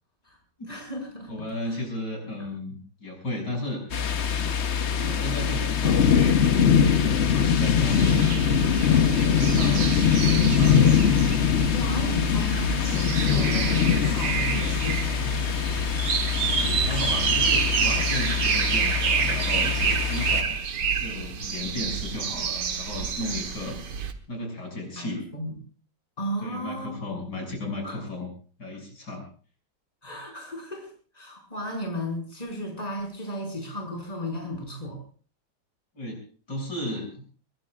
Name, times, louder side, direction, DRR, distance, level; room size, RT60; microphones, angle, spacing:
voice 1, 0.7-1.8 11.7-15.5 25.0-25.5 26.2-26.9 27.8-28.0 30.0-35.0, equal, 20° left, 1 dB, 5.9 m, -34 dB
voice 2, 1.3-3.8 4.9-8.2 8.8-11.2 16.5-20.6 21.0-23.8 24.3-25.2 26.4-28.3 28.6-29.3 35.9-36.2 36.5-37.3, left 1 dB, 75° left, 0 dB, 7.6 m, -34 dB
sound 1, 3.9-20.4, left 7 dB, 45° left, 1.1 m, -23 dB
sound 2, 7.9-24.1, right 6 dB, 80° right, 2.0 m, -28 dB
sound 3, 16.7-19.1, right 4 dB, 55° right, 2.1 m, -40 dB
23.5 x 21.5 x 2.5 m, 0.42 s
omnidirectional pair, 1.9 m